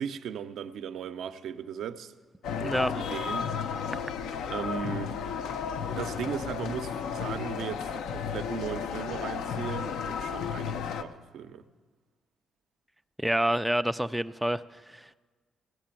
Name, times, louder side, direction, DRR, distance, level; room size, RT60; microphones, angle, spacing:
voice 1, 0.0-2.1 2.6-3.5 4.5-5.2 5.9-11.6, right 8 dB, 75° right, 0.6 m, -37 dB
sound 1, 2.4-11.0, left 7 dB, 85° left, 0.6 m, -33 dB
voice 2, 2.6-2.9 13.2-15.1, right 1 dB, 5° right, 0.3 m, -28 dB
16.0 x 6.7 x 8.9 m
cardioid pair, 90°, 0 cm